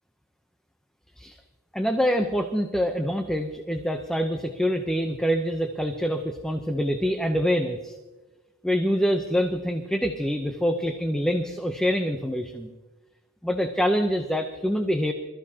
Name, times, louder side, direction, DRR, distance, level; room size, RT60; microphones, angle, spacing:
voice 1, 1.7-8.0 8.6-12.7 13.4-15.1, equal, 5° left, 4 dB, 0.7 m, -25 dB
25.5 x 14.0 x 2.9 m, 1.2 s
head